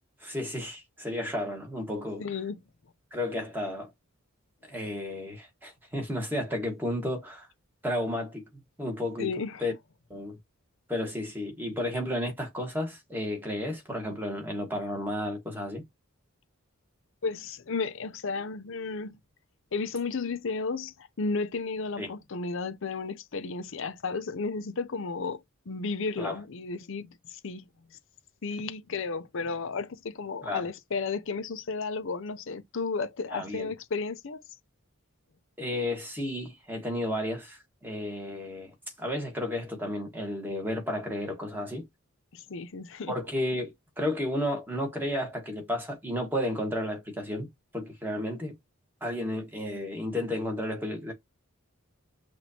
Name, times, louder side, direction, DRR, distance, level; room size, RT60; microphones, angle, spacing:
voice 1, 0.2-2.3 3.1-3.9 4.7-7.5 7.8-8.4 8.8-9.3 9.6-9.7 10.1-10.4 10.9-15.8 22.0-22.1 26.2-26.4 30.4-30.6 33.3-33.7 35.6-41.9 43.1-47.5 47.7-48.6 49.0-51.1, left 1 dB, 10° right, 1.4 m, -32 dB
voice 2, 2.2-2.6 9.2-9.6 17.2-19.2 19.7-28.0 28.4-34.4 42.3-43.1, left 4 dB, 60° left, 0.6 m, -33 dB
6.0 x 2.6 x 2.8 m
head